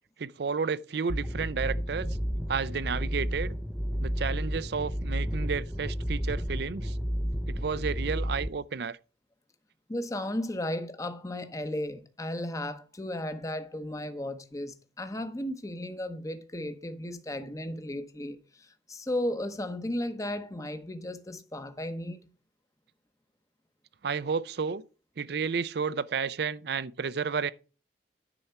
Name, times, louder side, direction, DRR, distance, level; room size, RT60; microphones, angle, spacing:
voice 1, 0.2-2.2 2.5-3.5 4.0-7.0 7.5-9.0 24.0-24.8 25.2-27.5, right 5 dB, 60° right, 0.5 m, -31 dB
sound 1, 1.1-8.5, equal, ahead, 0.5 m, -32 dB
voice 2, 9.9-22.3, left 1 dB, 20° left, 0.8 m, -35 dB
10.0 x 4.3 x 5.6 m
head